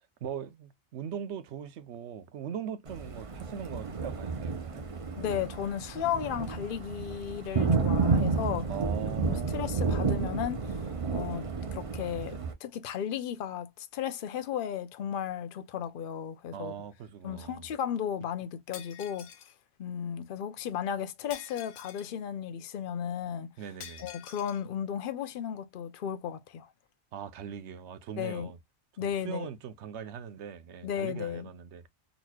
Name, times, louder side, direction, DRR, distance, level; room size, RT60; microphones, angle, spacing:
voice 1, 0.2-4.9 8.7-9.8 16.5-17.7 23.6-24.1 27.1-28.6 29.0-31.8, right 8 dB, 75° right, 0.9 m, -40 dB
Thunder, 2.9-12.5, right 4 dB, 35° right, 0.7 m, -31 dB
voice 2, 5.2-8.7 9.2-16.7 17.2-19.3 19.8-23.5 24.0-26.7 28.2-28.5 29.0-29.5 30.8-31.5, left 9 dB, 55° left, 0.7 m, -35 dB
Shatter, 18.7-19.5 21.3-22.2 23.8-24.6, left 9 dB, 85° left, 1.0 m, -47 dB
4.1 x 2.9 x 2.2 m
omnidirectional pair, 1.2 m